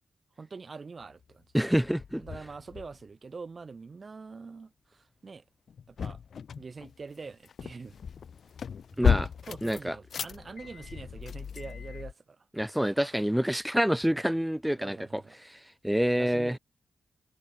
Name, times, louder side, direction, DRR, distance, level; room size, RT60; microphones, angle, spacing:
voice 1, 0.4-1.4 2.2-5.4 5.9-6.2 6.6-7.9 9.4-12.1 12.8-13.2 14.8-15.4 16.1-16.6, right 4 dB, 50° right, 1.4 m, -44 dB
sound 1, 1.0-1.3 1.8-3.0 5.7-12.1, left 7 dB, 70° left, 0.5 m, -34 dB
voice 2, 1.5-2.2 9.0-9.3 9.6-10.0 12.6-15.2 15.5-16.6, equal, 5° right, 0.6 m, -27 dB
cardioid pair, 55°, 0 cm